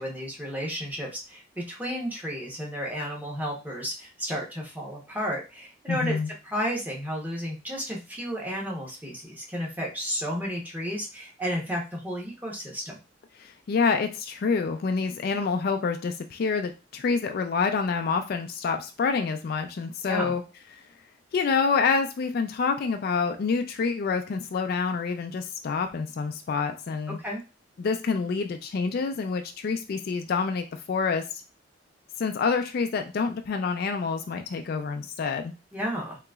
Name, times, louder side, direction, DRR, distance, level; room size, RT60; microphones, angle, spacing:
voice 1, 0.0-6.2 6.4-13.0 20.1-20.3 27.2-27.4 35.7-36.2, equal, 10° right, -2 dB, 0.9 m, -32 dB
voice 2, 5.9-6.3 13.4-20.4 21.3-27.2 27.8-31.4 32.2-35.5, left 5 dB, 55° left, 6 dB, 0.3 m, -27 dB
3.9 x 2.9 x 2.3 m, 0.31 s
head